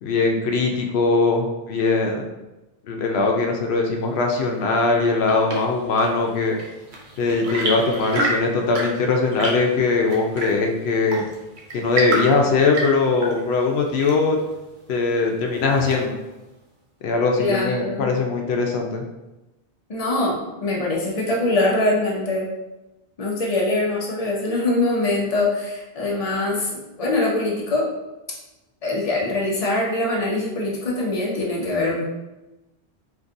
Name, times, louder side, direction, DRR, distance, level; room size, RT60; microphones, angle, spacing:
voice 1, 0.0-2.3 2.9-6.6 7.2-11.2 11.7-14.4 14.9-16.1 17.0-19.0, left 3 dB, 85° left, 1 dB, 0.8 m, -21 dB
Chirp tweet / Engine / Tap, 4.8-16.4, right 2 dB, 55° right, 0.8 m, -31 dB
voice 2, 17.4-18.1 19.9-22.5 23.2-27.9 28.8-32.0, left 2 dB, 40° left, -4 dB, 0.8 m, -23 dB
3.8 x 2.6 x 2.5 m, 1.0 s
omnidirectional pair, 1.0 m